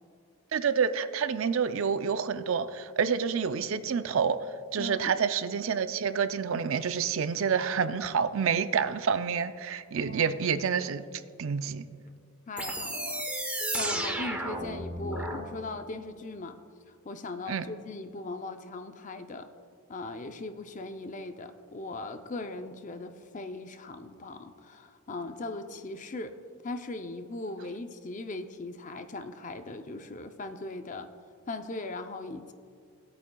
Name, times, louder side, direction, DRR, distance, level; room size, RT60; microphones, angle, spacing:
voice 1, 0.5-4.4 4.7-11.1 11.4-11.8 17.5-17.7, right 6 dB, 60° right, 11 dB, 0.4 m, -28 dB
voice 2, 4.8-5.1 10.0-10.3 12.5-13.2 13.7-16.6 17.0-19.5 19.9-26.4 26.6-31.1 31.5-32.5, left 2 dB, 35° left, 8 dB, 0.5 m, -39 dB
sound 1, 12.6-15.4, right 1 dB, 5° right, 0.9 m, -33 dB
18.5 x 8.6 x 2.3 m, 2.2 s
head